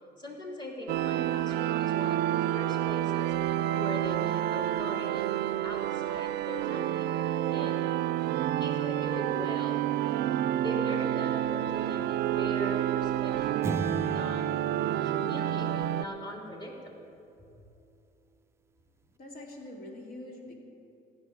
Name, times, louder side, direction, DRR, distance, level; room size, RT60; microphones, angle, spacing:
voice 1, 0.2-3.3 3.7-5.3 5.6-7.1 7.5-7.9 8.6-9.9 10.5-13.7 14.0-14.5 15.0-16.9, equal, 25° left, -2 dB, 3.2 m, -40 dB
sound 1, 0.9-16.0, right 12 dB, 75° right, 0.4 m, -29 dB
sound 2, 13.6-16.3, right 3 dB, 15° right, 0.4 m, -36 dB
voice 2, 19.2-20.6, left 1 dB, 60° left, 0 dB, 2.6 m, -44 dB
15.5 x 6.3 x 10.0 m, 2.6 s
cardioid pair, 110°, 17 cm